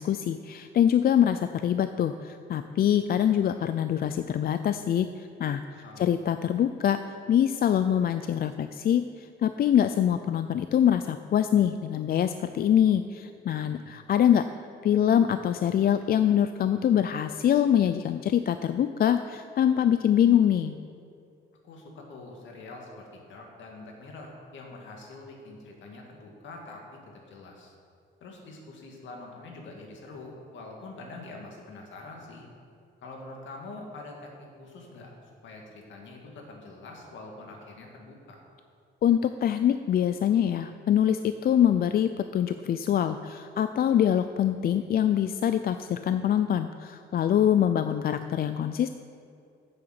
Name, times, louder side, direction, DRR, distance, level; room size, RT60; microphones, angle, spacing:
voice 1, 0.0-5.6 6.0-7.0 7.3-14.4 14.8-20.8 39.0-48.9, left 9 dB, 50° left, 10 dB, 0.4 m, -24 dB
voice 2, 5.7-6.1 13.6-13.9 21.6-27.7 28.2-32.5 33.0-34.3 34.6-35.1 35.4-38.4, left 2 dB, 70° left, 0 dB, 2.2 m, -45 dB
7.9 x 7.1 x 7.9 m, 2.4 s
cardioid pair, 90°, 20 cm